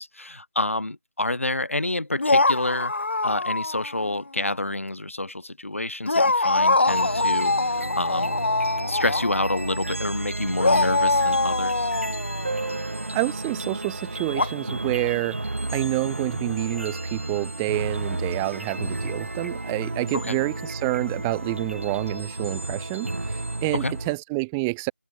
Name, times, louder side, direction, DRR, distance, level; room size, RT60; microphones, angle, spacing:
voice 1, 0.0-2.9 3.2-8.4 8.9-11.9 20.1-20.4 23.7-23.9, left 2 dB, 70° left, 3.3 m, -28 dB
sound 1, 2.2-4.1 4.4-4.5 6.0-9.9 10.6-13.0 14.3-14.5, left 2 dB, 55° left, 1.4 m, -23 dB
sound 2, 6.9-24.2, right 2 dB, 65° right, 3.3 m, -32 dB
Piano, 12.4-17.8 18.1-18.2 18.4-18.5 18.9-19.0 19.7-19.9, right 3 dB, 40° right, 2.9 m, -40 dB
voice 2, 13.1-15.4 15.7-24.9, right 29 dB, 5° right, 0.6 m, -28 dB
figure-of-eight pair, 170°, 7 cm